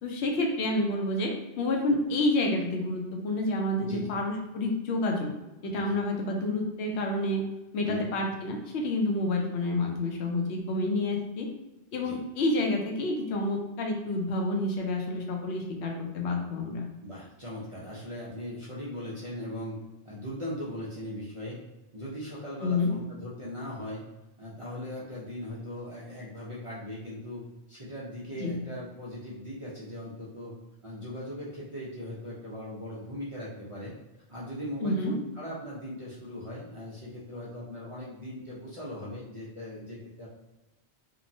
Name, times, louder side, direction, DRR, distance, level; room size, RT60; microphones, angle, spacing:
voice 1, 0.0-5.3 5.6-7.4 7.7-11.5 11.9-16.9 22.6-22.9 28.4-28.6 34.8-35.1, left 2 dB, 75° left, 1 dB, 0.8 m, -29 dB
voice 2, 3.8-4.1 5.7-6.0 7.8-8.1 12.0-12.2 17.0-19.8 20.0-21.6 21.9-24.0 24.4-27.4 27.7-30.5 30.8-33.9 34.3-40.3, left 1 dB, 45° right, -8 dB, 0.4 m, -39 dB
2.9 x 2.0 x 2.6 m, 1.1 s
omnidirectional pair, 1.1 m